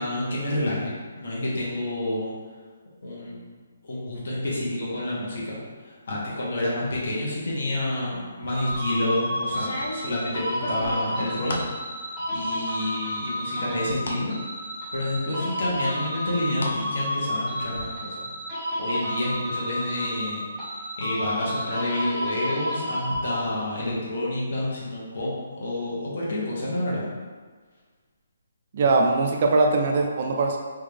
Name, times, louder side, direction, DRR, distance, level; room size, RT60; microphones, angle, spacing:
voice 1, 0.0-2.3 3.0-3.4 3.8-5.6 5.8-11.6 12.3-14.4 14.9-18.2 18.6-20.4 21.0-27.1, left 1 dB, 50° left, -5 dB, 1.3 m, -29 dB
sound 1, 8.4-8.9 9.5-11.8 12.2-12.8 13.1-14.2 14.7-14.8 15.6-16.8 17.1-17.8, left 1 dB, 80° left, 0.7 m, -35 dB
sound 2, 8.5-23.7, equal, 5° left, 0.8 m, -31 dB
voice 2, 28.7-30.6, right 3 dB, 30° right, 2 dB, 0.3 m, -21 dB
3.7 x 3.5 x 3.4 m, 1.5 s
hypercardioid pair, 180°, 0 cm